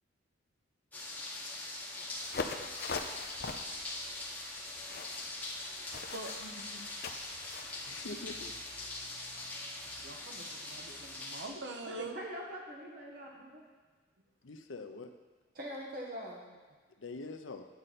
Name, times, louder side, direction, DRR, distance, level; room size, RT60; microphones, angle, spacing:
sound 1, 0.9-11.5, left 2 dB, 10° left, 1.7 m, -42 dB
sound 2, 2.2-7.7, left 4 dB, 55° left, 0.6 m, -42 dB
voice 1, 6.1-6.9 9.9-12.1, right 2 dB, 65° right, 3 dB, 1.0 m, -44 dB
voice 2, 7.9-9.0 14.4-15.1 17.0-17.7, left 3 dB, 85° left, 6 dB, 0.7 m, -45 dB
voice 3, 11.8-13.7 15.5-16.4, equal, 50° right, -2 dB, 1.7 m, -43 dB
9.6 x 7.7 x 4.2 m, 1.4 s
head